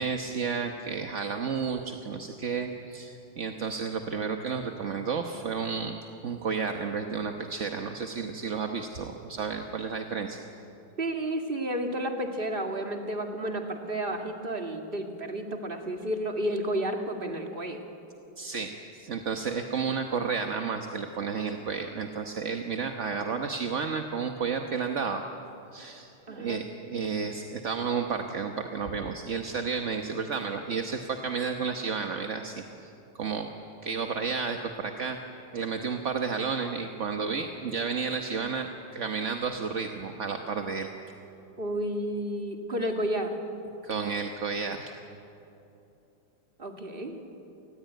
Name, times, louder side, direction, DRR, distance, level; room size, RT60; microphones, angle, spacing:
voice 1, 0.0-6.0 6.2-10.4 18.4-18.7 19.1-25.2 25.7-32.9 33.2-33.5 33.8-35.2 35.5-40.9 43.8-44.9, right 5 dB, 40° right, 4 dB, 1.2 m, -32 dB
voice 2, 11.0-17.8 26.3-26.6 41.6-43.3 46.6-47.2, right 1 dB, 25° right, 3 dB, 2.3 m, -31 dB
28.0 x 20.0 x 9.2 m, 2.8 s
omnidirectional pair, 2.3 m